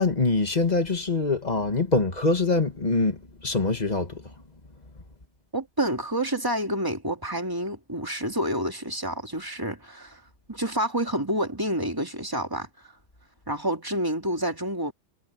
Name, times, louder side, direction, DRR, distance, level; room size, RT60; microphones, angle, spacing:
voice 1, 0.0-4.2, left 3 dB, 25° left, 1.9 m, -24 dB
voice 2, 5.5-10.2 10.5-12.7 13.5-14.9, right 1 dB, 10° right, 2.6 m, -28 dB
omnidirectional pair, 1.8 m